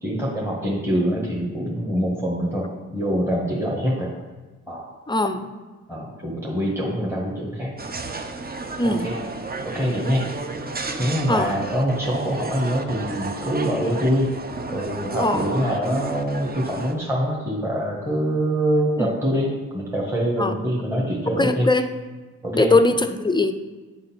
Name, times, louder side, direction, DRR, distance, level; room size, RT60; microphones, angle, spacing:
voice 1, 0.0-4.1 4.7-4.9 5.9-7.7 9.0-9.2 9.7-10.3 11.0-14.3 14.7-21.7 22.4-22.8, equal, 5° right, -3 dB, 1.6 m, -24 dB
voice 2, 5.1-5.5 8.8-9.1 11.3-11.5 15.2-15.5 19.0-19.1 20.4-20.5 21.4-21.9 22.5-23.5, left 2 dB, 15° left, 9 dB, 0.5 m, -20 dB
sound 1, 7.8-16.9, right 3 dB, 25° right, 0.7 m, -32 dB
8.4 x 3.8 x 4.5 m, 1.3 s
hypercardioid pair, 45°, 36 cm